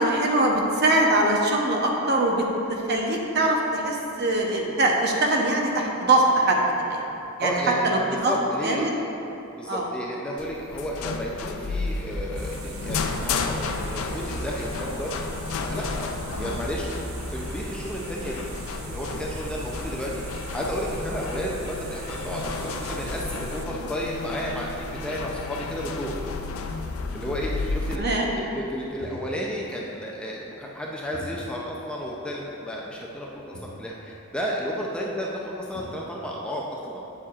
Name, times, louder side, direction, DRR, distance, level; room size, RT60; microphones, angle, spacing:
voice 1, 0.0-7.0 7.4-8.3 8.6-8.9 9.7-9.9 16.4-16.6 27.9-28.3, right 2 dB, 50° right, 0 dB, 0.8 m, -23 dB
voice 2, 7.4-8.9 9.5-15.1 15.6-16.1 16.4-16.9 17.3-18.5 18.8-20.3 20.5-26.2 27.1-28.0 28.3-37.1, equal, 5° left, -3 dB, 0.5 m, -32 dB
sound 1, 10.4-28.0, left 4 dB, 75° left, 0.4 m, -32 dB
sound 2, 12.3-23.7, right 2 dB, 75° right, 0.6 m, -39 dB
sound 3, 29.0-29.6 30.0-30.1 31.1-32.0 32.2-32.3 33.2-33.3 33.5-33.9 35.2-35.3 35.5-36.1, equal, 60° left, 1.0 m, -44 dB
8.3 x 7.4 x 2.4 m, 2.9 s
head